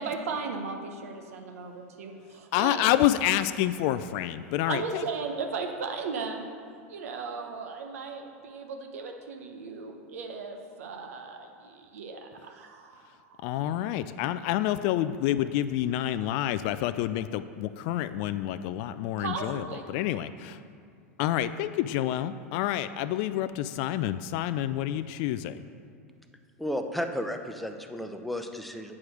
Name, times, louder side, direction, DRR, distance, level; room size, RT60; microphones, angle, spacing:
voice 1, 0.0-3.1 3.8-4.0 4.7-6.5 6.9-13.8 19.2-19.9, right 4 dB, 75° right, 3 dB, 1.0 m, -37 dB
voice 2, 2.5-5.0 13.4-20.6 21.2-25.6, left 12 dB, 55° left, 13 dB, 0.3 m, -28 dB
voice 3, 26.6-28.9, equal, ahead, 5 dB, 0.7 m, -33 dB
8.5 x 4.8 x 6.4 m, 2.3 s
hypercardioid pair, 100°, 8 cm